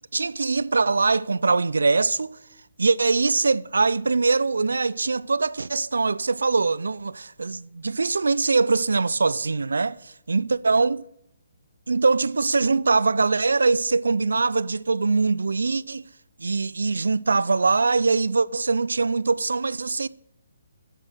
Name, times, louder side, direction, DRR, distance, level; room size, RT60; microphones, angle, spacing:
voice 1, 0.1-2.3 2.8-11.0 11.9-16.0 16.4-20.1, right 4 dB, 75° right, 0.4 m, -22 dB
7.8 x 7.7 x 6.1 m
figure-of-eight pair, 140°, 0 cm